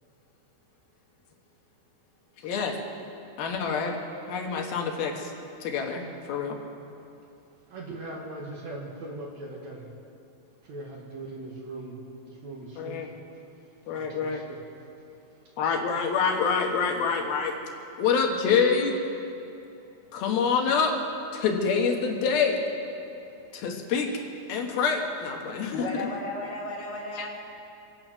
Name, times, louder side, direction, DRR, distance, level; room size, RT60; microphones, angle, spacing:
voice 1, 2.4-2.8 3.4-4.0 4.3-5.3 5.6-6.0 6.3-6.6 12.8-13.1 13.9-14.4 15.6-17.5 18.0-18.9 20.1-20.9 21.3-22.6 23.5-24.1 24.5-25.7 26.0-26.1 27.2-27.3, left 5 dB, 70° left, 2 dB, 3.2 m, -26 dB
voice 2, 7.7-9.9 10.6-13.1 14.0-14.6 19.6-19.7 23.0-23.7 24.5-24.7 25.4-25.5, right 2 dB, 55° right, -1 dB, 2.4 m, -41 dB
voice 3, 25.7-27.3, left 2 dB, 50° left, -3 dB, 3.5 m, -34 dB
26.0 x 8.8 x 6.1 m, 2.7 s
omnidirectional pair, 4.6 m